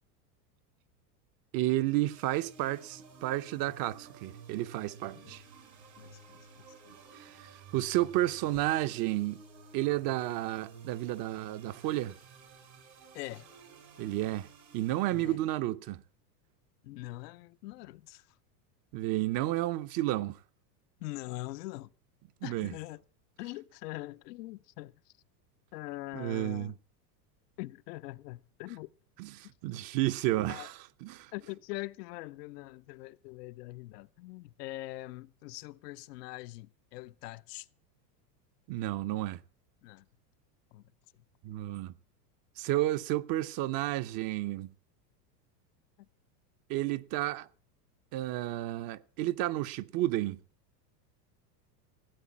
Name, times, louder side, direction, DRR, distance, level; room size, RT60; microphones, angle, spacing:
voice 1, 1.5-5.4 7.1-9.4 9.7-12.2 14.0-14.5 14.7-16.0 18.9-20.4 22.4-22.7 26.1-26.7 29.2-31.3 38.7-39.4 41.4-41.9 42.6-44.7 46.7-47.5 48.1-50.4, right 15 dB, 45° right, 0.8 m, -31 dB
sound 1, 2.0-15.6, right 5 dB, 90° right, 6.2 m, -53 dB
voice 2, 6.0-6.7 13.1-13.5 15.1-15.4 16.8-18.3 21.0-21.9 22.4-23.0 23.4-25.1 25.7-26.8 27.6-28.9 29.4-29.5 30.5-30.7 31.3-37.7 39.8-40.1 40.7-40.8 41.2-41.3 46.0-46.1, left 19 dB, 70° left, 0.8 m, -43 dB
16.0 x 8.4 x 7.2 m
supercardioid pair, 120°, 50 cm